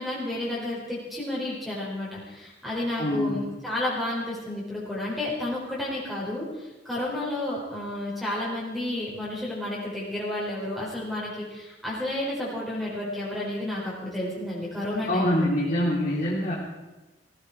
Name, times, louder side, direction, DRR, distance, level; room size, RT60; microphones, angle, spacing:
voice 1, 0.0-15.5, left 1 dB, ahead, -7 dB, 4.4 m, -31 dB
voice 2, 3.0-3.4 15.1-16.6, left 1 dB, 50° left, -5 dB, 3.2 m, -24 dB
16.5 x 16.5 x 4.9 m, 1.1 s
head